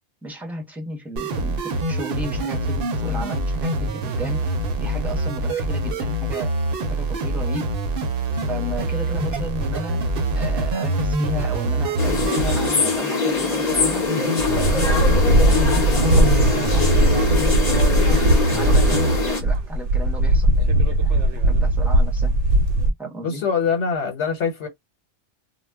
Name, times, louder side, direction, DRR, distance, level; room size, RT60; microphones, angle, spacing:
voice 1, 0.2-4.4 4.8-6.6 6.9-7.7 8.5-10.0 10.3-14.1 14.5-17.3 18.5-22.4 23.0-23.4, right 1 dB, ahead, 0.7 m, -34 dB
sound 1, 1.2-19.2, right 1 dB, 60° right, 0.8 m, -25 dB
sound 2, 12.0-19.4, left 4 dB, 40° left, 0.8 m, -23 dB
sound 3, 14.5-22.9, right 1 dB, 85° right, 0.9 m, -19 dB
voice 2, 23.2-24.7, left 6 dB, 75° left, 1.1 m, -23 dB
2.2 x 2.1 x 3.3 m
omnidirectional pair, 1.2 m